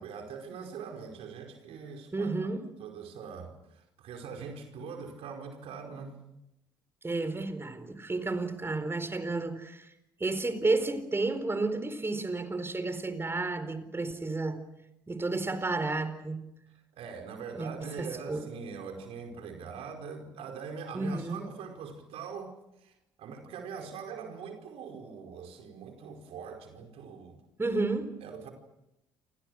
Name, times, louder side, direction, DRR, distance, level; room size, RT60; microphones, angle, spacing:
voice 1, 0.0-2.5 2.8-6.2 16.9-27.4 27.7-27.8 28.2-28.5, right 6 dB, 60° right, 4.9 m, -42 dB
voice 2, 2.1-2.6 7.0-9.9 10.2-14.6 15.1-16.4 17.5-18.4 20.9-21.4 27.6-28.1, right 3 dB, 20° right, 4.5 m, -31 dB
29.0 x 25.5 x 6.5 m
hypercardioid pair, 50°, 11 cm